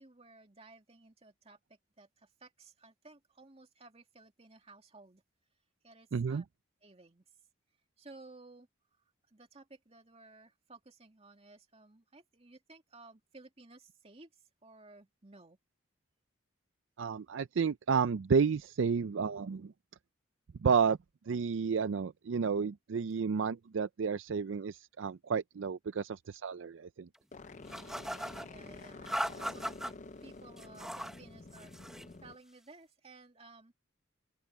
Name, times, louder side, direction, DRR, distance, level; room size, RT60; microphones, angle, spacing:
voice 1, 0.0-5.2 5.8-6.5 6.8-7.2 8.0-8.7 9.3-15.6 27.6-29.9 30.2-33.8, right 3 dB, 30° right, 2.4 m, -56 dB
voice 2, 6.1-6.4 17.0-19.7 20.6-21.0 21.3-27.1, right 6 dB, 70° right, 0.4 m, -31 dB
sound 1, 27.3-32.4, left 3 dB, 35° left, 0.5 m, -49 dB
sound 2, 27.7-28.5 29.1-29.9 30.6-31.2 31.5-32.1, equal, ahead, 1.0 m, -38 dB
open air
head